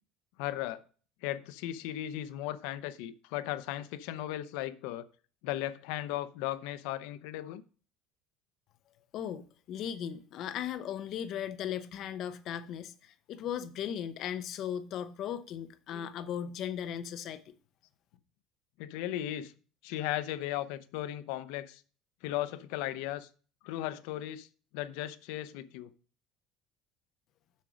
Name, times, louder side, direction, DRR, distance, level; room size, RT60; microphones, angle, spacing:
voice 1, 0.4-0.8 1.2-5.1 5.4-7.6 15.9-16.1 18.8-19.5 19.8-21.8 22.2-23.3 23.6-24.5 24.7-25.9, left 13 dB, 75° left, 0.7 m, -36 dB
voice 2, 9.1-17.5, left 9 dB, 40° left, 0.7 m, -37 dB
7.3 x 6.2 x 5.0 m
cardioid pair, 180°, 0 cm